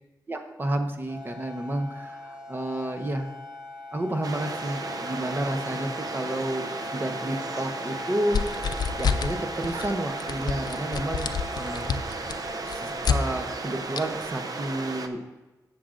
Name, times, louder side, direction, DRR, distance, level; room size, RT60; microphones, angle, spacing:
voice 1, 0.3-3.3 3.9-12.5 12.7-15.3, right 1 dB, 30° right, 5 dB, 0.8 m, -31 dB
sound 1, 1.1-14.4, left 2 dB, 10° right, 1.5 m, -41 dB
sound 2, 4.2-15.1, right 3 dB, 65° right, 0.6 m, -35 dB
sound 3, 8.3-9.4 9.6-9.9 10.2-13.2 14.0-14.1, left 6 dB, 80° left, 0.4 m, -27 dB
16.0 x 6.3 x 2.5 m, 1.1 s
wide cardioid pair, 125°, 7 cm